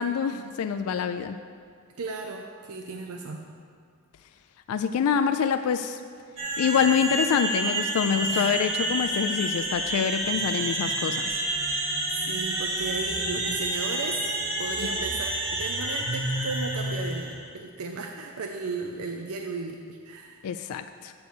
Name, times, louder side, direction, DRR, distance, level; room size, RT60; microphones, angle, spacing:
voice 1, 0.0-1.4 4.7-6.0 6.6-11.4 14.8-15.1 20.4-21.1, left 7 dB, 85° left, 9 dB, 0.3 m, -26 dB
voice 2, 2.0-3.5 8.3-8.5 11.8-14.2 14.6-20.4, right 4 dB, 85° right, 3 dB, 0.5 m, -35 dB
sound 1, 6.4-17.3, right 1 dB, 60° right, 1.9 m, -29 dB
6.8 x 6.7 x 6.2 m, 2.1 s
head